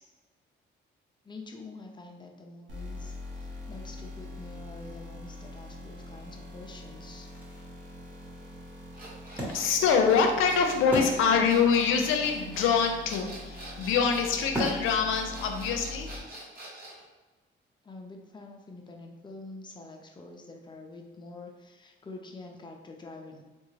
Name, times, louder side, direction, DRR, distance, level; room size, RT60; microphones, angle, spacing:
voice 1, 1.2-7.3 17.8-23.4, left 3 dB, 25° left, 2 dB, 0.5 m, -46 dB
sound 1, 2.7-16.2, left 2 dB, 75° right, 0.9 m, -44 dB
Wood, 7.2-11.7 12.0-12.1 12.2-16.6, right 1 dB, 10° right, 1.2 m, -38 dB
sound 2, 8.9-17.0, right 1 dB, 45° right, 1.2 m, -45 dB
voice 2, 9.5-16.1, left 6 dB, 90° left, 4 dB, 0.5 m, -25 dB
3.5 x 2.4 x 3.1 m, 1.2 s
cardioid pair, 90°, 20 cm